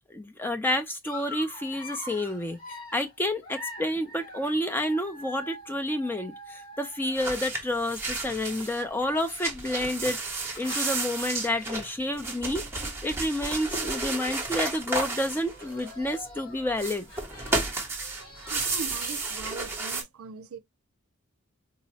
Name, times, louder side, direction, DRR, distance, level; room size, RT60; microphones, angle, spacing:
voice 1, 0.1-17.1, left 1 dB, 10° left, 0.3 m, -30 dB
Dog, 1.0-7.6 8.4-12.0 12.4-12.6 12.9-13.0 13.8-13.9 14.1-14.7 15.3-19.4, left 2 dB, 70° left, 2.0 m, -45 dB
sound 1, 7.2-8.8 9.2-16.2 16.7-20.0, right 3 dB, 10° right, 0.8 m, -32 dB
voice 2, 18.5-20.6, right 4 dB, 80° right, 0.5 m, -40 dB
3.8 x 2.0 x 2.7 m
head